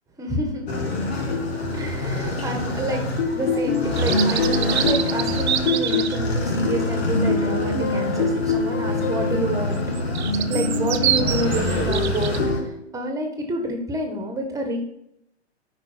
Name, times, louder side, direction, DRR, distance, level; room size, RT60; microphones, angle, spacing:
voice 1, 0.2-0.7 1.7-3.0 3.3-9.8 10.3-14.8, right 1 dB, 10° right, 4 dB, 1.6 m, -28 dB
sound 1, 0.7-12.6, left 2 dB, 65° left, 2.4 m, -24 dB
sound 2, 3.8-6.2 9.7-12.4, right 10 dB, 70° right, 0.7 m, -26 dB
8.9 x 5.4 x 4.5 m, 0.78 s
hypercardioid pair, 120°, 34 cm